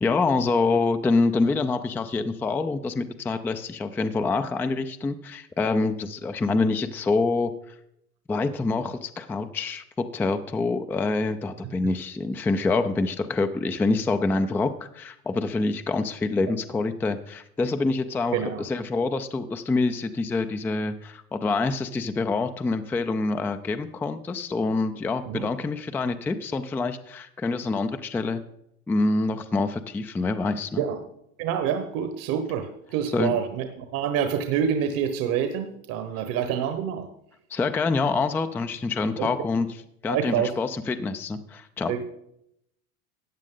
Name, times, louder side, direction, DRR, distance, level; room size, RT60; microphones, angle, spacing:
voice 1, 0.0-7.5 8.3-28.4 28.9-30.8 33.1-33.4 37.5-39.7 40.0-41.9, left 3 dB, 5° left, 9 dB, 0.3 m, -26 dB
voice 2, 18.3-18.6 25.3-25.5 30.8-31.1 31.4-37.1 39.2-39.4 40.1-40.6 41.9-42.1, right 8 dB, 50° right, 8 dB, 1.2 m, -27 dB
14.0 x 8.9 x 3.8 m, 0.77 s
hypercardioid pair, 100°, 42 cm